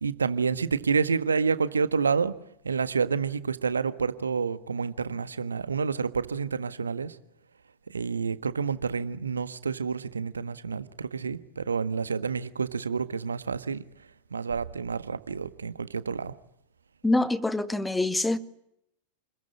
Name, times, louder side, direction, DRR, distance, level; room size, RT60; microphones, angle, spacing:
voice 1, 0.0-2.3 2.6-7.1 7.9-13.8 14.3-16.3, right 5 dB, 75° right, 1.5 m, -29 dB
voice 2, 17.0-18.4, left 2 dB, 5° left, 1.7 m, -25 dB
29.5 x 21.5 x 8.6 m
figure-of-eight pair, 90°, 0 cm